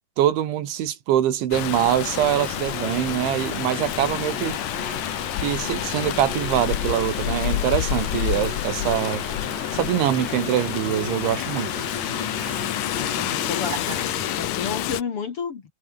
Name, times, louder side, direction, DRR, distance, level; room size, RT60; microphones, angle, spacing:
voice 1, 0.2-4.6 5.4-9.2 9.7-11.7, right 11 dB, 85° right, 4.6 m, -24 dB
Rain, 1.5-15.0, left 14 dB, 90° left, 1.8 m, -28 dB
Trumpet, 1.6-5.8, left 4 dB, 65° left, 9.9 m, -51 dB
sound 1, 2.1-14.5, right 8 dB, 45° right, 2.7 m, -39 dB
voice 2, 12.8-15.6, left 6 dB, 45° left, 2.0 m, -32 dB
omnidirectional pair, 5.2 m